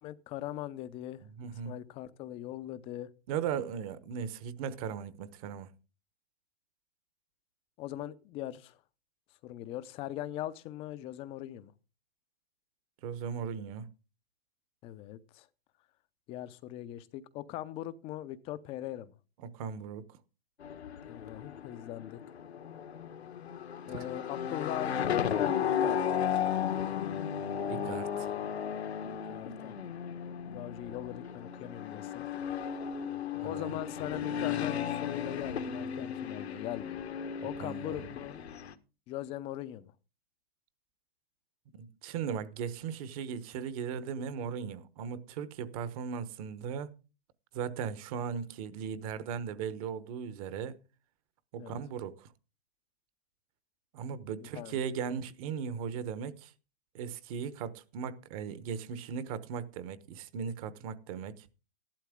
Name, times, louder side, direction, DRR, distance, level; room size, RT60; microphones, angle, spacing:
voice 1, 0.0-1.2 1.7-3.1 7.8-8.8 9.4-11.7 14.8-15.5 16.3-19.1 21.1-22.2 23.9-26.2 29.0-29.7 30.5-32.3 33.4-37.0 37.4-38.4 39.1-39.9 51.6-51.8 54.5-54.9, left 13 dB, 20° left, 0.6 m, -40 dB
voice 2, 1.3-1.7 3.3-5.7 13.0-13.9 19.4-20.0 23.9-24.1 27.7-28.3 33.4-33.7 37.6-38.1 41.8-46.9 47.5-50.8 51.5-52.3 53.9-56.5 56.9-61.5, right 7 dB, 35° right, 1.1 m, -37 dB
sound 1, 20.6-38.7, left 8 dB, 80° left, 1.5 m, -35 dB
14.0 x 11.5 x 3.6 m
hypercardioid pair, 145°, 32 cm